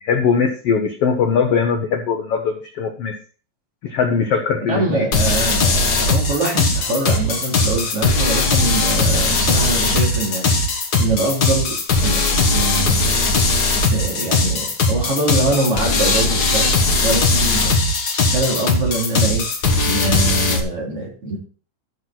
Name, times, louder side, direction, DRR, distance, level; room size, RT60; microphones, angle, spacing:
voice 1, 0.0-3.1 3.8-5.1, left 6 dB, 80° left, 5 dB, 1.3 m, -20 dB
voice 2, 4.6-10.5 11.0-13.2 13.9-16.7 17.0-17.8 18.3-19.4 19.8-21.4, right 2 dB, 40° right, -2 dB, 4.0 m, -24 dB
sound 1, 5.1-20.6, left 3 dB, 55° left, 1.0 m, -19 dB
13.5 x 6.2 x 3.9 m, 0.38 s
omnidirectional pair, 4.1 m